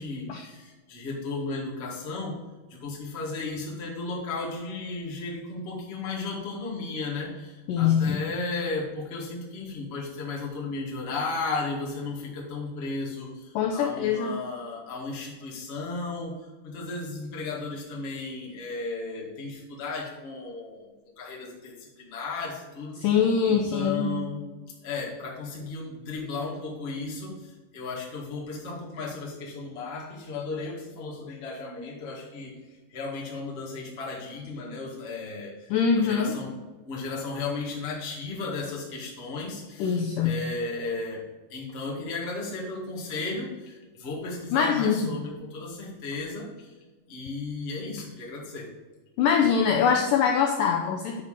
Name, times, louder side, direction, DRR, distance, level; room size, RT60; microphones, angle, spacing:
voice 1, 0.0-2.4 2.7-16.4 16.6-20.8 21.2-23.0 23.4-24.4 24.8-32.5 32.9-35.5 35.9-36.6 36.9-41.2 41.5-46.7 47.1-48.7, left 3 dB, 50° left, -4 dB, 0.7 m, -34 dB
voice 2, 7.7-8.2 13.6-14.4 23.0-24.1 35.7-36.3 39.8-40.4 44.5-45.1 49.2-51.2, left 7 dB, 90° left, 2 dB, 1.9 m, -23 dB
9.4 x 5.8 x 4.9 m, 1.3 s
omnidirectional pair, 4.6 m